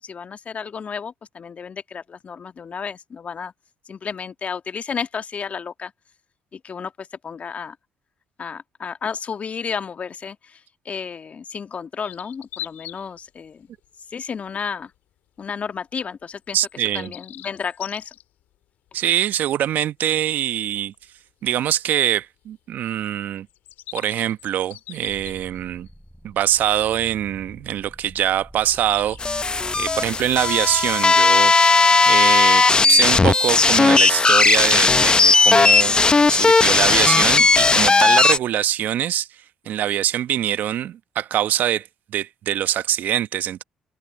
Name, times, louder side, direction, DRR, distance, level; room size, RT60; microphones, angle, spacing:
voice 1, 0.0-3.5 3.9-5.9 6.5-7.8 8.4-13.7 14.1-14.9 15.4-16.6 16.9-18.1, left 6 dB, 45° left, 1.7 m, -32 dB
sound 1, 12.0-13.1 13.6-13.8 14.7-14.8 16.6-18.2 20.7-20.8 21.0-21.1 23.5-25.9 27.7-27.8 28.6-30.8, left 14 dB, 70° left, 4.7 m, -40 dB
voice 2, 16.5-17.1 18.9-20.9 21.4-23.5 23.9-25.9 26.2-29.5 29.7-36.0 36.3-39.3 39.7-43.6, right 11 dB, 65° right, 1.1 m, -23 dB
sound 2, 25.1-31.0, equal, 5° right, 8.0 m, -44 dB
sound 3, 29.2-38.4, left 3 dB, 25° left, 0.7 m, -16 dB
open air
hypercardioid pair, 50°, 3 cm